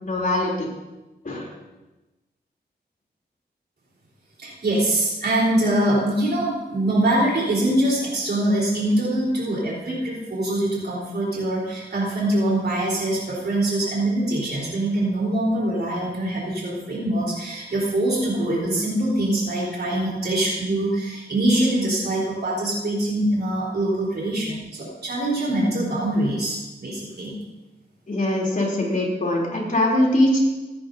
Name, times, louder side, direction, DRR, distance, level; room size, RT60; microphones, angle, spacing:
voice 1, 0.0-0.7 1.2-1.5 28.1-30.4, left 1 dB, 50° left, -2 dB, 3.5 m, -22 dB
voice 2, 4.4-27.3, right 1 dB, 70° right, -6 dB, 4.2 m, -23 dB
16.0 x 10.0 x 2.8 m, 1.1 s
cardioid pair, 65°, 18 cm